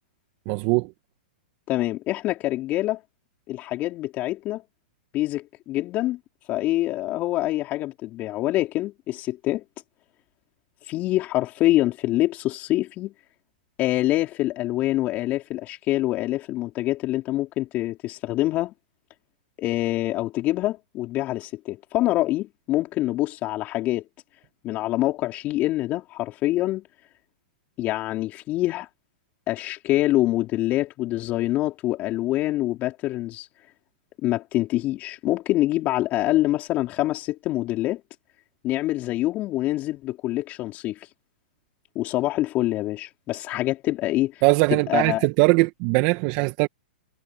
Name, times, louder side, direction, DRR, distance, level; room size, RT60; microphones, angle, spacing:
voice 1, 0.5-0.9 44.4-46.7, right 25 dB, 40° right, 1.9 m, -21 dB
voice 2, 1.7-3.0 3.5-4.6 5.1-6.2 6.5-9.6 10.8-13.1 13.8-18.7 19.6-24.0 24.6-26.9 27.8-28.9 29.5-33.5 34.2-38.0 38.6-41.1 41.9-44.4 44.7-45.3, left 16 dB, 30° left, 4.7 m, -25 dB
hypercardioid pair, 125°, 5 cm